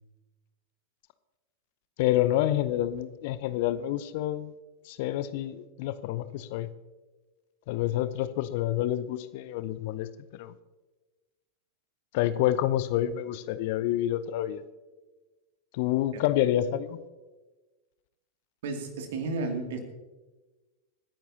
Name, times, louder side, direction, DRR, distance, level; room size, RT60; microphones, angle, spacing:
voice 1, 2.0-4.5 4.8-6.7 7.7-10.5 12.1-14.6 15.7-17.0, left 13 dB, 50° left, 14 dB, 0.7 m, -28 dB
voice 2, 18.6-19.8, right 3 dB, 55° right, 4 dB, 2.4 m, -32 dB
26.5 x 10.5 x 2.8 m, 1.2 s
figure-of-eight pair, 90°, 0 cm